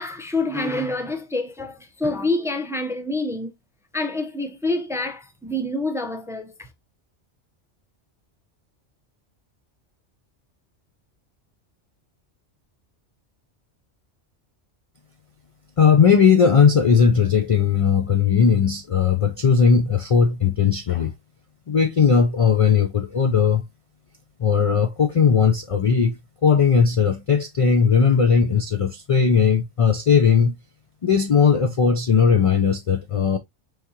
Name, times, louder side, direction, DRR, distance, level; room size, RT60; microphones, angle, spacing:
voice 1, 0.0-3.5 3.9-6.7, left 2 dB, 5° right, 0.5 m, -27 dB
voice 2, 15.8-21.1 21.7-23.6 24.4-30.6 31.0-33.4, left 6 dB, 55° left, 0.3 m, -18 dB
4.7 x 3.5 x 2.8 m
omnidirectional pair, 1.2 m